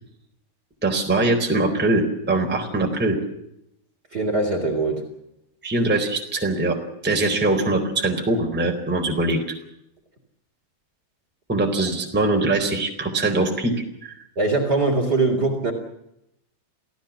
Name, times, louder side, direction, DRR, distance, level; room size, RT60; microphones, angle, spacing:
voice 1, 0.8-3.2 5.6-9.4 11.5-14.1, right 2 dB, ahead, 2 dB, 3.5 m, -22 dB
voice 2, 4.1-5.1 14.4-15.7, right 3 dB, 25° right, 5 dB, 3.8 m, -22 dB
28.0 x 17.0 x 7.3 m, 0.81 s
omnidirectional pair, 4.9 m